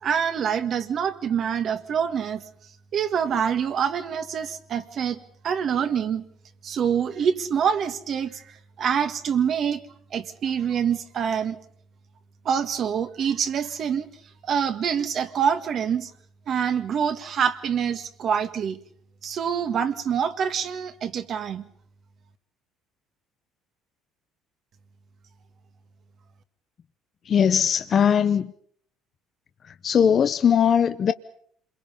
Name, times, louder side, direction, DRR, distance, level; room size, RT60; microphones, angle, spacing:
voice 1, 0.0-2.4 2.9-6.2 6.6-9.8 10.1-11.6 12.5-14.1 14.4-16.1 16.5-18.8 19.2-21.6, right 7 dB, 55° right, 1.8 m, -26 dB
voice 2, 27.2-28.5 29.6-31.1, left 8 dB, 50° left, 0.8 m, -20 dB
27.5 x 22.5 x 5.4 m
supercardioid pair, 75°, 0 cm